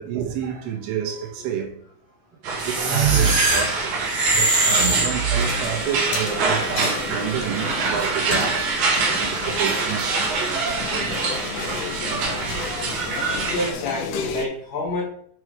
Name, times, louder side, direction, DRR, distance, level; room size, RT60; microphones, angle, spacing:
voice 1, 0.0-1.7 2.6-4.0 4.3-8.8 9.1-10.3 13.1-13.3, right 8 dB, 80° right, 3.7 m, -29 dB
sound 1, 2.4-13.7, right 4 dB, 65° right, 2.0 m, -25 dB
sound 2, 2.6-5.8, right 3 dB, 35° right, 2.9 m, -21 dB
sound 3, 5.4-14.5, left 7 dB, 80° left, 2.6 m, -33 dB
voice 2, 13.5-15.0, left 2 dB, 50° left, 3.2 m, -27 dB
8.7 x 4.7 x 4.7 m
omnidirectional pair, 5.6 m